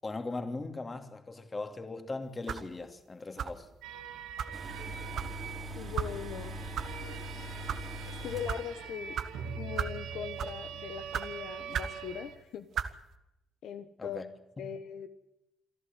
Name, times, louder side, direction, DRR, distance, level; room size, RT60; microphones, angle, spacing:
voice 1, 0.0-3.7 14.0-14.3 14.6-14.7, left 3 dB, 25° left, 2.8 m, -39 dB
sound 1, 2.5-2.7 3.4-3.7 4.4-4.5 5.2-5.3 6.0-6.1 6.7-6.9 7.5-7.8 8.5-8.6 9.2-9.3 9.8-10.0 10.4-10.6 11.1-11.3 11.7-12.0 12.7-12.9, right 8 dB, 65° right, 1.5 m, -34 dB
sound 2, 3.8-12.4, right 7 dB, 90° right, 2.3 m, -43 dB
sound 3, 4.5-9.0 9.2-9.3, equal, 35° right, 3.2 m, -42 dB
voice 2, 5.7-6.6 8.1-9.2 9.6-12.7 13.6-14.2 14.6-15.1, left 8 dB, 75° left, 1.4 m, -40 dB
27.5 x 11.5 x 9.4 m
cardioid pair, 90°, 0 cm